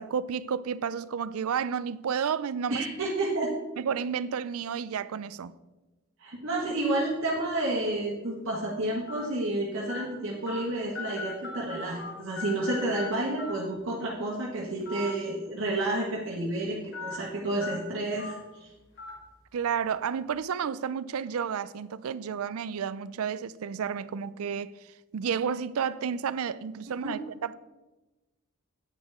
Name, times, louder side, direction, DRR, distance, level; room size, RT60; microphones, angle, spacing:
voice 1, 0.0-2.9 3.8-5.5 19.5-27.6, right 7 dB, 80° right, 0.4 m, -31 dB
voice 2, 2.7-3.5 6.2-18.7 27.0-27.2, right 2 dB, 60° right, 1.7 m, -30 dB
sound 1, 6.9-7.1 7.9-8.0 9.1-9.2 9.9-10.0 10.5-10.6 10.9-12.1 12.4-13.1 13.4-13.5 14.8-15.1 15.5-15.6 16.9-17.1 17.6-17.7 18.2-18.3 19.0-19.1, left 4 dB, 60° left, 3.1 m, -38 dB
10.0 x 9.3 x 3.6 m
head